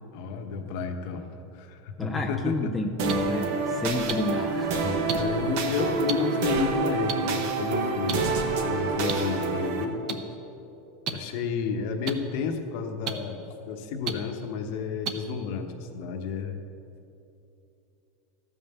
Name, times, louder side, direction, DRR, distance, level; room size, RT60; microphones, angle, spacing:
voice 1, 0.1-1.3 1.5-2.7 5.2-10.2 11.1-16.6, left 6 dB, 50° left, 5 dB, 0.9 m, -31 dB
voice 2, 2.0-5.0, left 2 dB, 5° left, 1 dB, 0.4 m, -30 dB
sound 1, 3.0-9.8, right 4 dB, 55° right, 1.0 m, -27 dB
sound 2, 3.1-3.2 4.1-4.2 5.1-5.2 6.1-6.2 7.1-7.2 8.1-8.2 9.1-9.2 10.1-10.2 11.1-11.2 12.1-12.2 13.1-13.2 14.1-14.2 15.0-15.1 16.0-16.1, right 8 dB, 35° right, 0.6 m, -29 dB
13.5 x 5.5 x 6.8 m, 2.8 s
supercardioid pair, 170°, 0 cm